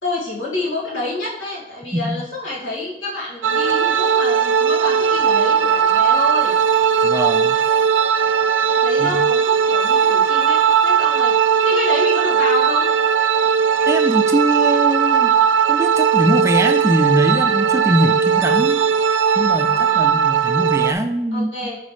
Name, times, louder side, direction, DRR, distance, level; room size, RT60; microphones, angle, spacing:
voice 1, 0.0-6.5 8.8-12.9 19.6-20.0 21.3-21.8, left 2 dB, 85° left, -5 dB, 2.3 m, -28 dB
sound 1, 3.4-20.9, right 7 dB, 85° right, 0.4 m, -17 dB
voice 2, 7.0-7.6 9.0-9.2 13.9-15.4 15.7-18.8 19.4-21.5, right 1 dB, 15° right, 7 dB, 0.3 m, -22 dB
9.3 x 4.0 x 3.2 m, 0.96 s
head